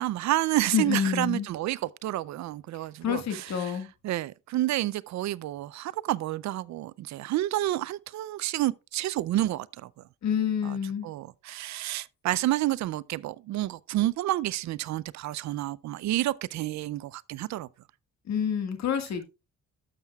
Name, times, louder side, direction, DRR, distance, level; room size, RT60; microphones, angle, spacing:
voice 1, 0.0-3.8 4.0-10.0 10.6-10.8 11.0-17.7, right 15 dB, 65° right, 0.4 m, -29 dB
voice 2, 0.7-1.5 3.0-3.9 10.2-11.1 18.3-19.3, left 8 dB, 65° left, 1.8 m, -28 dB
12.0 x 7.4 x 2.3 m
cardioid pair, 90°, 30 cm